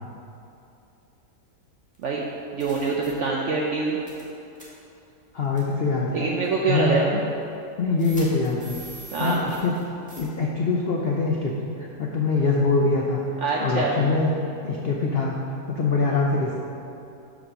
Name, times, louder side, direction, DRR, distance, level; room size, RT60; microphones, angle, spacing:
sound 1, 1.9-2.0 2.6-3.1 4.1-4.3 4.6-4.7 5.6-5.7 6.4-6.5 8.0-9.8 10.1-10.3, right 2 dB, 5° left, 1.2 m, -43 dB
voice 1, 2.5-4.0 6.1-7.2 9.1-9.4 13.4-14.0, right 4 dB, 70° right, -2 dB, 0.7 m, -24 dB
voice 2, 5.3-6.3 6.7-7.0 7.8-8.8 9.2-9.8 10.2-11.5 11.8-13.2 13.6-15.3 15.7-16.6, left 3 dB, 80° left, -1 dB, 0.5 m, -23 dB
5.2 x 4.9 x 6.1 m, 2.8 s
omnidirectional pair, 1.8 m